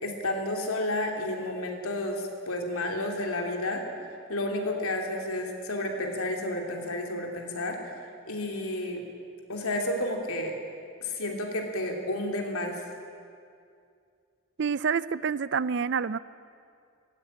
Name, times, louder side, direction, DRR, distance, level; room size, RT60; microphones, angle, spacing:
voice 1, 0.0-3.8 4.3-7.8 8.3-9.0 9.5-10.5 11.0-12.8, left 1 dB, 85° left, 2 dB, 3.1 m, -31 dB
voice 2, 14.6-16.2, right 6 dB, 55° right, 18 dB, 0.4 m, -27 dB
17.0 x 16.0 x 10.0 m, 2.4 s
head